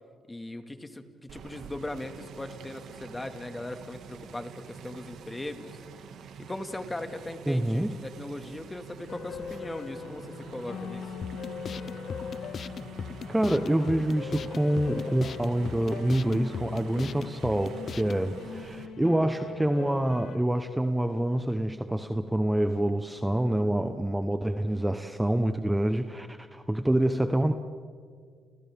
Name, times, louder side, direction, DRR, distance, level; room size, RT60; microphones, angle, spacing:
voice 1, 0.3-5.8 6.5-11.2, left 2 dB, 15° left, 6 dB, 2.1 m, -39 dB
sound 1, 1.3-18.9, right 6 dB, 75° right, 2.0 m, -46 dB
voice 2, 7.5-7.9 13.3-27.5, right 1 dB, 10° right, 7 dB, 1.0 m, -26 dB
sound 2, 9.1-20.4, left 6 dB, 70° left, 1.4 m, -41 dB
sound 3, 11.2-18.2, left 7 dB, 50° left, 0.5 m, -39 dB
30.0 x 29.5 x 3.7 m, 2.1 s
cardioid pair, 85°, 0 cm